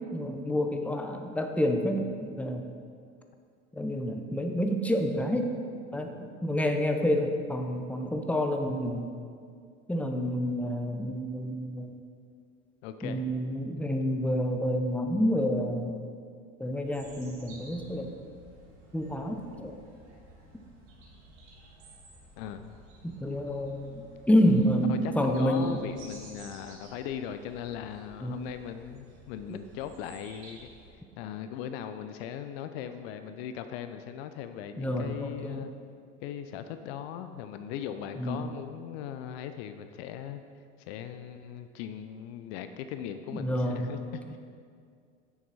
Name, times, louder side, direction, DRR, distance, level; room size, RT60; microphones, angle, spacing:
voice 1, 0.0-2.6 3.7-5.5 5.9-9.1 9.9-12.0 13.0-16.0 16.6-18.2 18.9-19.7 23.0-25.8 28.2-28.4 29.5-29.6 34.8-35.6 38.2-38.4 43.3-44.1, equal, 5° left, 4 dB, 0.8 m, -28 dB
voice 2, 12.8-13.2 13.7-14.1 22.4-22.8 24.4-24.6 24.9-30.7 31.2-35.7 36.2-40.4 40.8-44.4, left 9 dB, 55° left, 9 dB, 0.6 m, -39 dB
sound 1, 16.8-30.9, right 2 dB, 65° right, 2.3 m, -53 dB
9.6 x 7.1 x 4.2 m, 2.3 s
hypercardioid pair, 75°, 36 cm